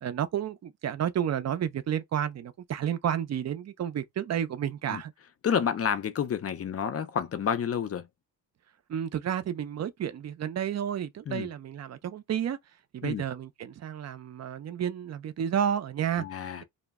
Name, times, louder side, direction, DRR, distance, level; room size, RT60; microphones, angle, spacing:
voice 1, 0.0-5.1 8.9-12.6 12.9-16.2, right 9 dB, 40° right, 0.4 m, -31 dB
voice 2, 5.4-8.1 11.3-11.5 13.0-13.2 16.2-16.6, left 7 dB, 35° left, 0.4 m, -29 dB
2.1 x 2.0 x 3.4 m
cardioid pair, 85°, 44 cm